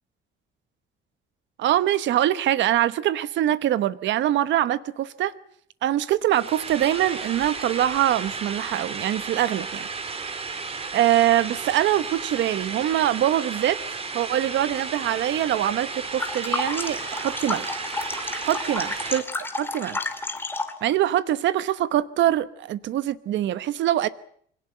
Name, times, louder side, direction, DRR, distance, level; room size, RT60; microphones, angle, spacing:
voice 1, 1.6-5.3 5.8-9.9 10.9-13.8 14.1-17.8 18.4-20.0 20.8-24.1, right 12 dB, 65° right, 1.2 m, -23 dB
sound 1, 6.3-19.2, right 4 dB, 30° right, 2.9 m, -33 dB
sound 2, 16.0-20.8, left 3 dB, 10° left, 2.4 m, -31 dB
25.0 x 18.0 x 8.9 m
cardioid pair, 165°, 21 cm